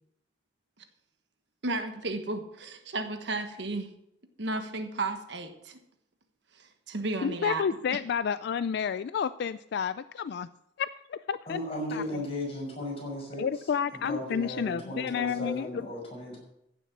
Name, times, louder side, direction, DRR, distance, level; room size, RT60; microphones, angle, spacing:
voice 1, 1.6-3.9 4.4-5.8 6.5-7.6 7.9-8.0, right 2 dB, 70° right, 7 dB, 1.4 m, -33 dB
voice 2, 7.2-10.5 10.8-11.6 11.9-12.2 13.4-15.7, left 7 dB, 65° left, 14 dB, 0.3 m, -30 dB
voice 3, 11.5-13.4 13.9-16.4, left 1 dB, 35° left, -2 dB, 5.9 m, -36 dB
15.0 x 7.1 x 6.1 m, 0.80 s
head